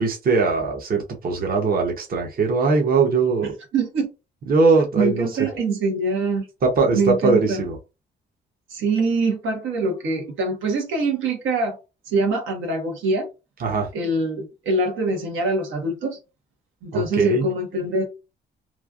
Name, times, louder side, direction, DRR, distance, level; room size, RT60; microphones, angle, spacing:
voice 1, 0.0-3.5 4.5-5.5 6.6-7.8 13.6-13.9 16.9-17.5, right 4 dB, 50° right, 0.9 m, -20 dB
voice 2, 3.7-4.1 5.0-6.5 6.9-7.6 8.7-11.8 12.0-13.3 13.9-16.2 16.8-18.0, right 3 dB, 80° right, 1.2 m, -24 dB
3.1 x 2.4 x 2.4 m
cardioid pair, 90°, 20 cm